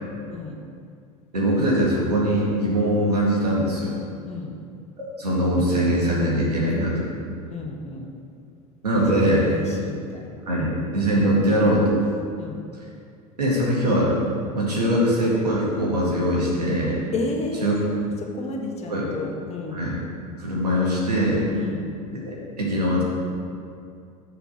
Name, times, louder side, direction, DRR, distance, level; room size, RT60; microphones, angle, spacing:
voice 1, 0.3-0.6 4.2-4.6 7.5-8.1 8.9-10.7 12.4-12.6 17.1-17.7 18.2-19.9 21.5-21.8, left 3 dB, 35° left, 1 dB, 1.4 m, -33 dB
voice 2, 1.3-3.9 5.0-7.0 8.8-9.5 10.5-11.9 13.4-14.1 14.5-17.0 17.6-17.8 18.9-19.0 19.7-19.9 20.4-21.4 22.3-23.0, equal, 85° right, -5 dB, 2.3 m, -22 dB
6.9 x 6.3 x 5.9 m, 2.3 s
figure-of-eight pair, 80°, 20 cm